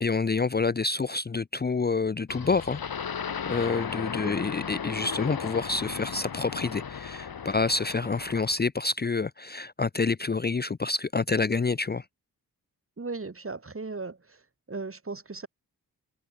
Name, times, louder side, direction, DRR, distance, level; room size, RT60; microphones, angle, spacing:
voice 1, 0.0-2.8 3.5-12.0, left 4 dB, 25° left, 0.7 m, -28 dB
sound 1, 2.3-8.6, left 7 dB, 65° left, 3.8 m, -35 dB
voice 2, 13.0-14.4 14.7-15.5, right 3 dB, 35° right, 5.8 m, -37 dB
cardioid pair, 80°, 38 cm